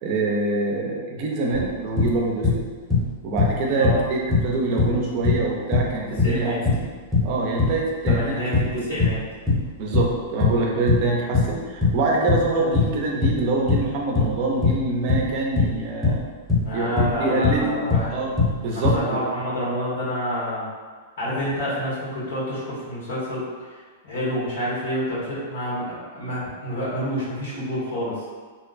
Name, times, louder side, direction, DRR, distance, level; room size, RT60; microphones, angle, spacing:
voice 1, 0.0-2.6 3.2-6.8 7.2-8.4 8.9-9.0 9.8-16.2 16.7-17.8 18.1-18.9, right 2 dB, 45° right, -1 dB, 0.4 m, -25 dB
sound 1, 1.5-2.6 2.9-4.1 4.3-10.1 10.4-17.6 17.9-19.0, left 4 dB, ahead, 0.8 m, -21 dB
voice 2, 6.2-6.6 8.1-9.2 16.6-18.1 18.7-20.7 21.2-23.5 24.0-28.2, equal, 85° left, -7 dB, 1.1 m, -28 dB
2.6 x 2.0 x 2.4 m, 1.5 s
hypercardioid pair, 140°, 0 cm